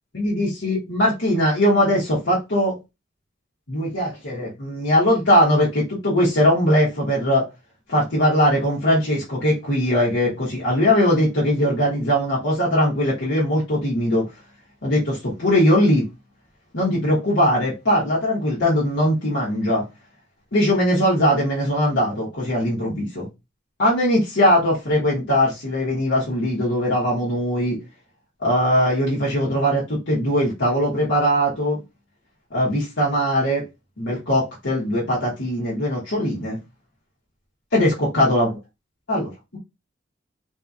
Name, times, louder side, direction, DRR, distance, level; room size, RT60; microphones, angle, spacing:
voice 1, 0.1-2.7 3.7-7.5 7.9-14.3 14.8-16.1 16.7-19.8 20.5-23.3 23.8-27.8 28.4-31.8 32.5-33.6 34.0-36.6 37.7-38.6 39.1-39.6, equal, 80° left, 1.3 m, -20 dB
4.0 x 2.8 x 2.4 m
head